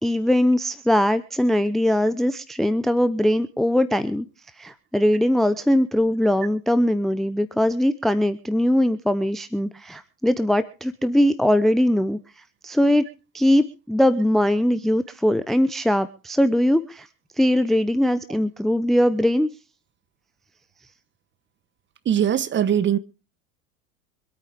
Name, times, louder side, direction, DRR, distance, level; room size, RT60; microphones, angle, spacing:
voice 1, 0.0-4.3 4.6-12.2 12.6-13.1 13.3-17.1 17.4-19.5, left 1 dB, ahead, 0.7 m, -21 dB
voice 2, 22.0-23.0, right 9 dB, 25° right, 1.2 m, -21 dB
25.5 x 9.0 x 3.6 m
figure-of-eight pair, 85°, 44 cm